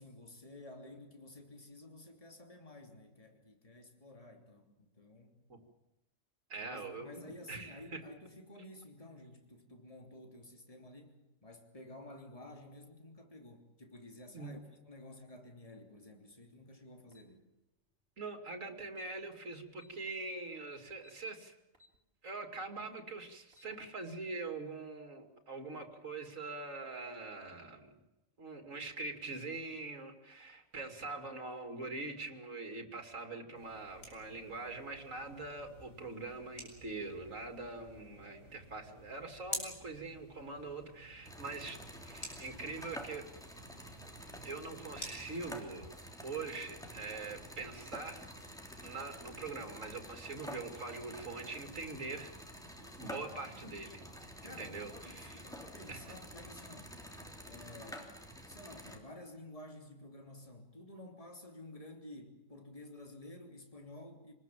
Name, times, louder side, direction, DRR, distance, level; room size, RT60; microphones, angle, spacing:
voice 1, 0.0-5.4 6.6-14.6 14.9-17.4 53.3-53.6 54.4-56.9 57.4-64.3, left 1 dB, 25° left, 3 dB, 3.2 m, -52 dB
voice 2, 6.5-7.2 7.5-8.0 14.3-14.5 18.2-21.5 22.2-27.9 28.4-43.2 44.4-45.9 46.2-48.3 48.8-52.3 53.0-55.4 55.9-56.1, right 3 dB, 70° right, 5 dB, 3.0 m, -43 dB
sound 1, 17.1-17.3 18.5-18.6 18.9-19.1 19.8-20.3 21.0-21.2 21.7-22.0 22.4-22.5 23.3-23.7, left 2 dB, 45° right, 4.4 m, -64 dB
sound 2, 33.6-46.0, left 1 dB, 75° left, 6.7 m, -50 dB
sound 3, 41.2-59.0, equal, 5° left, 3.3 m, -49 dB
27.0 x 20.0 x 7.5 m, 0.94 s
omnidirectional pair, 1.4 m